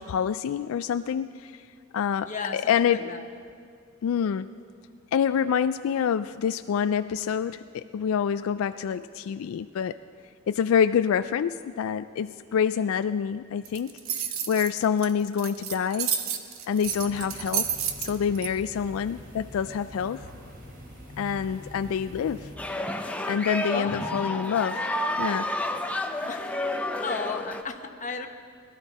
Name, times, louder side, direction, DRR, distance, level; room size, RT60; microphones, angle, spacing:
voice 1, 0.0-1.6 1.9-3.1 4.0-4.5 5.1-10.0 10.5-13.9 14.2-16.1 16.7-17.7 18.0-20.3 21.2-22.5 23.3-24.9 25.2-25.5, left 7 dB, 80° left, 12 dB, 0.3 m, -27 dB
voice 2, 2.2-3.3 23.7-24.1 26.3-26.6 27.0-28.3, left 4 dB, 40° left, 5 dB, 1.0 m, -34 dB
sound 1, 13.7-18.5, right 8 dB, 85° right, 0.9 m, -30 dB
sound 2, 16.8-22.6, left 1 dB, 50° right, 3.0 m, -44 dB
sound 3, 22.6-27.6, left 1 dB, 5° left, 0.7 m, -30 dB
22.0 x 12.5 x 4.1 m, 2.2 s
head